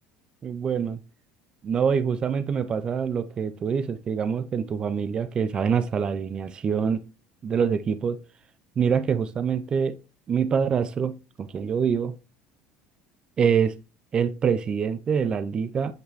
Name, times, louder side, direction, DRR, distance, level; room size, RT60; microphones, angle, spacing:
voice 1, 0.4-1.0 1.6-7.0 7.4-8.2 8.8-10.0 10.3-12.1 13.4-13.7 14.1-15.9, right 7 dB, 30° right, 0.5 m, -25 dB
8.1 x 5.1 x 3.0 m
supercardioid pair, 115°, 3 cm